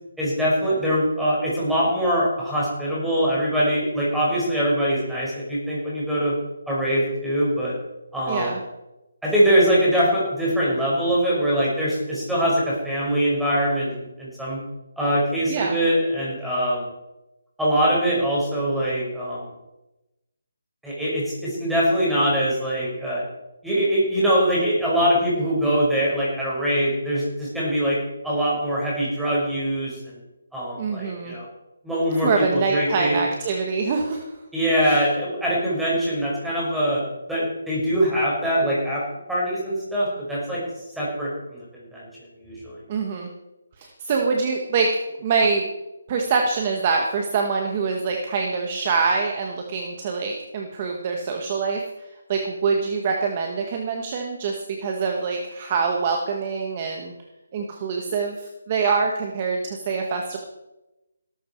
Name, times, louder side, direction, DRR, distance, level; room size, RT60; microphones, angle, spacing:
voice 1, 0.2-6.3 6.7-7.7 8.1-8.5 9.2-14.6 15.0-16.9 17.6-19.5 20.8-23.2 23.6-28.0 28.2-30.2 30.5-31.5 31.8-33.2 34.5-37.0 37.3-39.0 39.3-40.6 41.0-42.1 42.4-42.8, equal, ahead, -8 dB, 5.7 m, -23 dB
voice 2, 8.3-8.6 15.5-15.8 30.8-31.3 32.2-34.3 34.9-35.0 42.9-43.3 43.8-44.9 45.2-45.7 46.1-51.8 52.3-57.1 57.5-60.4, right 5 dB, 25° right, 2 dB, 1.6 m, -25 dB
18.0 x 13.0 x 4.7 m, 0.96 s
hypercardioid pair, 170°, 0 cm